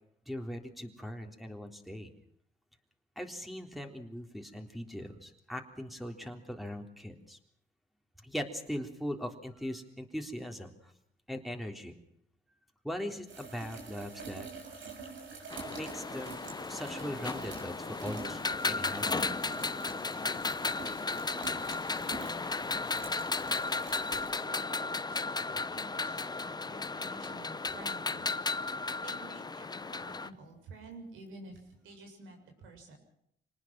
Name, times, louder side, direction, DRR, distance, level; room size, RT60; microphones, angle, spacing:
voice 1, 0.3-2.1 3.2-7.4 8.2-10.9 11.3-11.9 12.8-14.5 15.7-16.4 16.7-19.3, equal, ahead, 4 dB, 3.6 m, -40 dB
sound 1, 13.3-25.1 26.6-26.7 31.6-31.7, right 4 dB, 70° right, 6.9 m, -47 dB
sound 2, 15.5-30.3, left 4 dB, 20° left, 0.8 m, -35 dB
voice 2, 23.9-28.3 29.0-32.9, right 2 dB, 85° right, 3 dB, 7.1 m, -51 dB
26.0 x 19.5 x 6.2 m, 0.73 s
cardioid pair, 90°, 20 cm